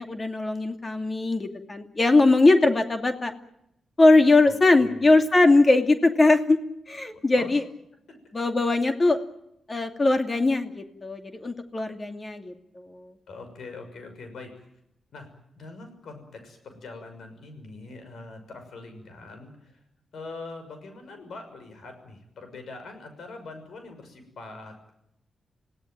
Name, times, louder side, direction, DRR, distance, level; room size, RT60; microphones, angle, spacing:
voice 1, 0.0-3.3 4.0-6.6 6.9-7.6 8.3-9.2 9.7-12.5 12.9-13.0, left 2 dB, 35° left, 6 dB, 2.5 m, -20 dB
voice 2, 4.4-5.1 7.3-7.5 13.3-14.7 15.1-15.3 15.5-19.8 20.1-24.9, left 3 dB, 75° left, 7 dB, 6.2 m, -43 dB
27.0 x 17.0 x 9.3 m, 0.82 s
supercardioid pair, 55°, 0 cm